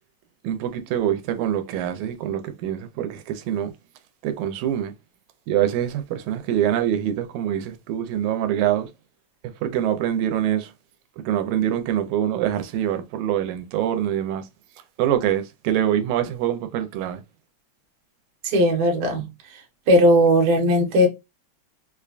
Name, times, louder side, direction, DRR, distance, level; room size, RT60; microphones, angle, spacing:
voice 1, 0.4-3.7 4.2-4.9 5.5-8.9 9.6-10.7 11.2-14.5 15.0-17.2, right 10 dB, 85° right, 2.0 m, -24 dB
voice 2, 18.4-19.3 19.9-21.1, equal, 60° right, 1.5 m, -17 dB
4.9 x 2.2 x 2.4 m
omnidirectional pair, 3.3 m